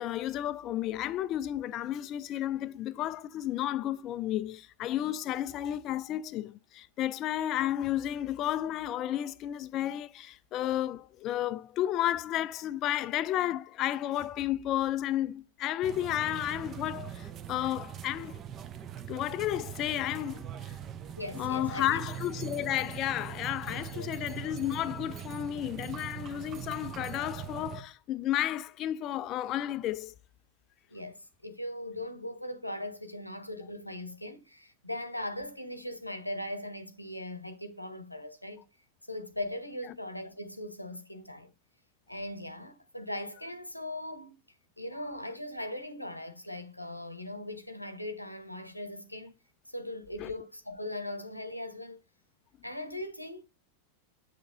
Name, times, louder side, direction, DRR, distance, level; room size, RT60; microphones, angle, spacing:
voice 1, 0.0-18.4 19.1-20.7 21.3-30.1 50.2-50.3, left 12 dB, 35° left, 0.3 m, -32 dB
sound 1, 15.8-27.8, right 9 dB, 30° right, 0.7 m, -42 dB
voice 2, 21.1-22.0 23.7-24.1 30.9-38.7 39.1-41.5 42.1-44.4 44.8-49.3 49.7-52.0 52.6-53.4, left 1 dB, 90° left, 0.9 m, -39 dB
8.0 x 6.4 x 2.5 m
figure-of-eight pair, 90°, 0 cm